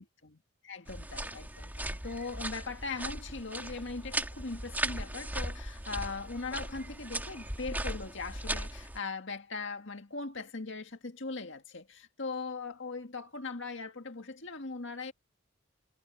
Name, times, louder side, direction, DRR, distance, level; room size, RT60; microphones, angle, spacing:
voice 1, 0.0-15.1, left 4 dB, 60° left, 1.9 m, -40 dB
sound 1, 0.9-9.0, right 1 dB, 10° right, 2.2 m, -38 dB
head